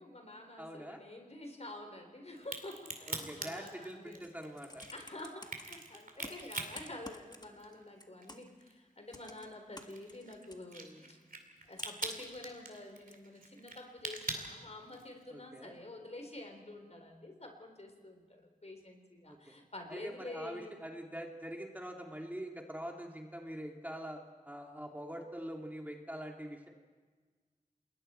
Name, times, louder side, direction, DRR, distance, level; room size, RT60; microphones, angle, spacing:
voice 1, 0.0-4.3 4.9-11.2 11.7-20.7, left 2 dB, 50° left, 4 dB, 3.8 m, -48 dB
voice 2, 0.6-1.0 3.1-4.8 15.3-15.7 19.2-19.4 19.9-26.7, equal, 10° right, 1 dB, 2.3 m, -44 dB
Crack, 2.4-7.9 8.2-15.2, right 3 dB, 90° right, 2.5 m, -43 dB
Computer keyboard, 4.3-5.6 6.2-7.7 8.0-8.6 9.1-10.6 11.8-12.4 13.1-13.2, left 1 dB, 30° left, 1.7 m, -50 dB
29.0 x 21.0 x 4.4 m, 1.4 s
wide cardioid pair, 65°, 14 cm